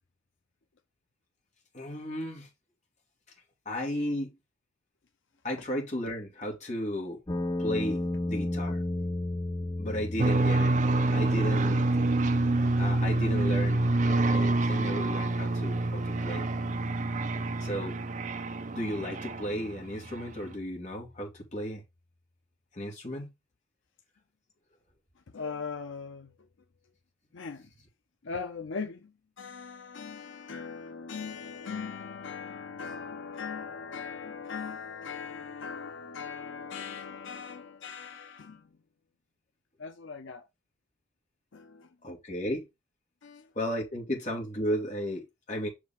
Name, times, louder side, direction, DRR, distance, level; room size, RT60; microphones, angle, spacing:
voice 1, 1.7-2.5 3.7-4.3 5.4-7.2 7.6-8.8 9.8-10.7 11.1-11.9 12.8-16.4 17.6-18.0 18.7-21.8 22.7-23.3 42.0-42.6 43.6-45.2 45.5-45.7, equal, 35° left, 2.3 m, -34 dB
sound 1, 7.3-21.3, left 1 dB, 20° left, 0.7 m, -37 dB
sound 2, 10.2-19.8, right 2 dB, 40° right, 0.5 m, -27 dB
voice 2, 25.3-26.3 27.3-27.7 28.2-29.1 29.4-38.7 39.8-40.4 41.5-41.9 43.2-43.5, left 5 dB, 75° left, 0.6 m, -39 dB
6.0 x 4.9 x 3.7 m
head